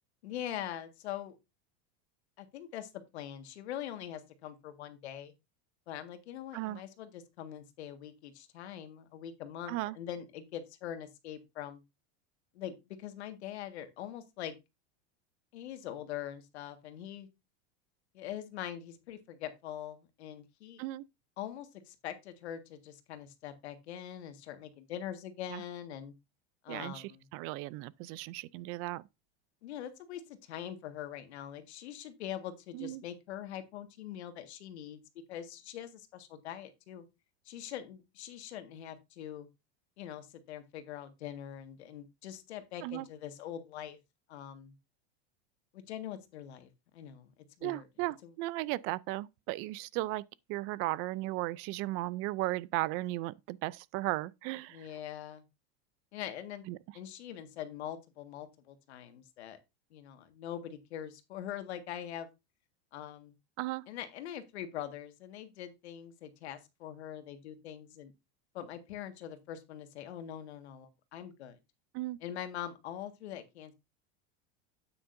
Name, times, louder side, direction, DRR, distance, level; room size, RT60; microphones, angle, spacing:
voice 1, 0.2-1.3 2.4-5.3 5.9-11.8 12.5-14.5 15.5-17.3 18.1-20.8 21.4-26.1 26.6-27.2 29.6-35.0 35.3-37.0 37.4-39.5 40.0-44.0 44.3-44.7 45.7-47.3 47.6-47.9 48.2-48.3 54.7-55.4 56.1-56.7 56.9-59.6 59.9-62.3 62.9-63.4 63.9-68.1 68.5-71.6 72.2-73.7, left 10 dB, 90° left, 1.7 m, -43 dB
voice 2, 26.7-29.1 32.7-33.0 42.8-43.1 47.6-50.2 50.5-54.9 56.7-56.8 63.6-63.9 71.9-72.2, right 18 dB, 45° right, 0.4 m, -36 dB
8.8 x 8.8 x 2.6 m
supercardioid pair, 135°, 32 cm